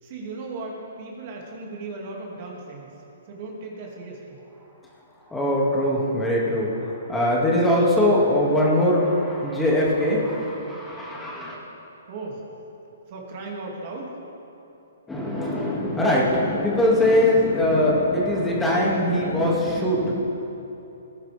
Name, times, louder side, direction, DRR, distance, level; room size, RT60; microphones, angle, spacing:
voice 1, 0.0-2.9 3.3-4.4 12.1-12.4 13.1-14.2, right 3 dB, 45° right, -1 dB, 2.6 m, -36 dB
voice 2, 5.3-11.6 15.1-20.1, left 1 dB, 5° left, -5 dB, 2.4 m, -21 dB
19.5 x 11.0 x 3.6 m, 2.9 s
hypercardioid pair, 140°, 0 cm